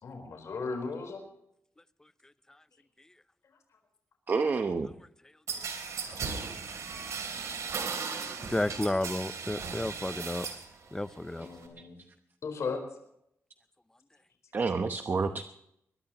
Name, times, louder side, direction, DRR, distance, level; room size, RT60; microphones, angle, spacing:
voice 1, 0.0-1.2 11.4-12.0 12.4-12.8, left 4 dB, 75° left, 3 dB, 4.2 m, -36 dB
voice 2, 4.3-4.9 14.5-15.4, right 4 dB, 45° right, 7 dB, 0.9 m, -28 dB
sound 1, 5.5-10.7 11.0-11.7, right 5 dB, 85° right, 3.3 m, -37 dB
voice 3, 8.5-10.5 10.9-11.5, left 1 dB, 10° left, 14 dB, 0.6 m, -31 dB
22.0 x 20.5 x 3.0 m, 0.76 s
wide cardioid pair, 140°, 5 cm